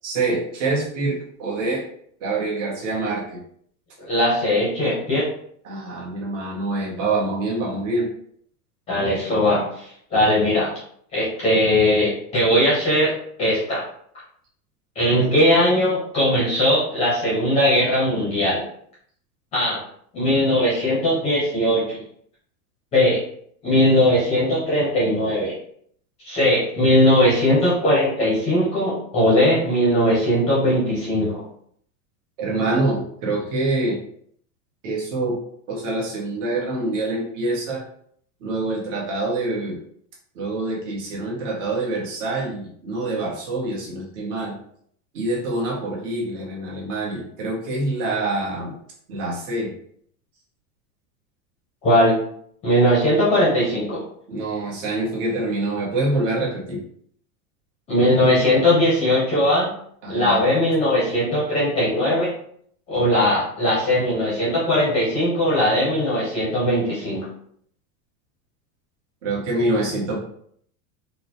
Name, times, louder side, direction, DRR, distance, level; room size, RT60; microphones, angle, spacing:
voice 1, 0.0-1.8 2.2-3.4 5.6-8.1 32.4-34.0 34.8-35.4 35.7-37.8 38.4-39.8 40.3-44.6 45.1-48.7 49.1-49.7 54.3-56.8 60.0-60.4 69.2-70.2, right 2 dB, 55° right, -3 dB, 1.3 m, -25 dB
voice 2, 4.0-5.3 8.9-10.7 11.1-13.1 13.4-13.8 15.0-18.6 19.5-19.8 20.1-22.0 22.9-23.2 23.6-25.5 26.2-31.4 51.8-52.1 52.6-54.0 57.9-59.7 60.1-62.3 62.9-67.2, left 1 dB, 15° left, -7 dB, 0.6 m, -19 dB
4.2 x 2.2 x 2.8 m, 0.65 s
supercardioid pair, 175°, 45 cm